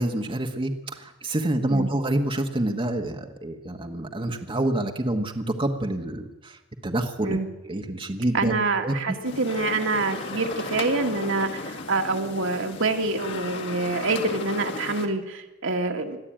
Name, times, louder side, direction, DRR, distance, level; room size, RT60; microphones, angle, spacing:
voice 1, 0.0-8.5 8.8-9.2, right 1 dB, 25° right, 3 dB, 1.4 m, -27 dB
voice 2, 8.3-16.2, right 3 dB, 65° right, 4 dB, 1.9 m, -26 dB
sound 1, 9.2-15.1, left 3 dB, 60° left, 2.2 m, -35 dB
22.0 x 13.5 x 9.0 m, 1.0 s
head